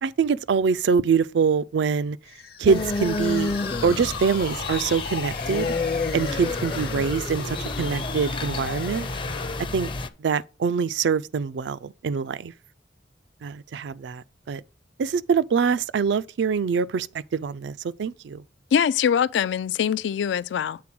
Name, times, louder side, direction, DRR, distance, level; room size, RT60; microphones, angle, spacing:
voice 1, 0.0-2.2 2.6-3.6 3.8-5.7 6.1-9.1 9.7-9.9 10.2-12.5 13.4-14.6 15.0-18.4, right 6 dB, 75° right, 0.4 m, -24 dB
sound 1, 2.3-9.7, left 4 dB, 60° left, 0.8 m, -36 dB
sound 2, 2.7-10.1, left 3 dB, 30° left, 0.5 m, -30 dB
voice 2, 18.7-20.8, left 8 dB, 85° left, 0.3 m, -23 dB
7.5 x 3.8 x 5.9 m
head